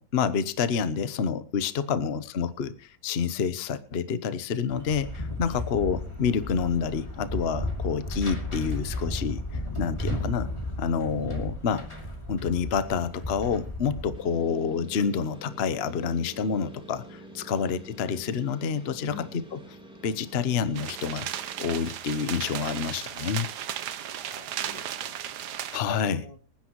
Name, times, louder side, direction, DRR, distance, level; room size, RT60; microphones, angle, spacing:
voice 1, 0.0-9.4 9.8-10.5 10.8-11.8 12.3-19.3 19.5-19.6 20.0-23.5 25.7-26.2, left 6 dB, 45° left, 13 dB, 1.0 m, -28 dB
sound 1, 4.7-14.2, left 1 dB, 15° left, 2.6 m, -34 dB
sound 2, 14.1-21.9, right 1 dB, 5° right, 2.7 m, -47 dB
sound 3, 20.8-25.8, right 10 dB, 70° right, 1.4 m, -35 dB
voice 2, 24.1-25.2 25.5-26.4, left 5 dB, 85° left, 6 dB, 2.7 m, -47 dB
25.0 x 9.9 x 3.0 m, 0.38 s
omnidirectional pair, 1.9 m